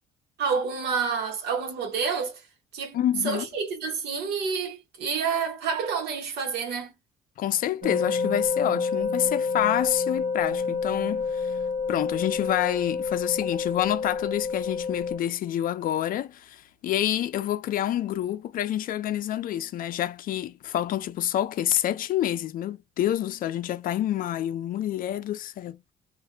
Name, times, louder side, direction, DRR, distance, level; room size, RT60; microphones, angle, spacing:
voice 1, 0.4-2.4 2.7-3.0 3.2-6.9, right 5 dB, 75° right, 1.2 m, -28 dB
voice 2, 2.9-3.4 7.4-11.5 11.9-25.8, left 12 dB, 55° left, 0.4 m, -28 dB
sound 1, 7.8-15.2, left 5 dB, 45° right, 1.3 m, -28 dB
2.6 x 2.5 x 2.2 m
cardioid pair, 110°, 17 cm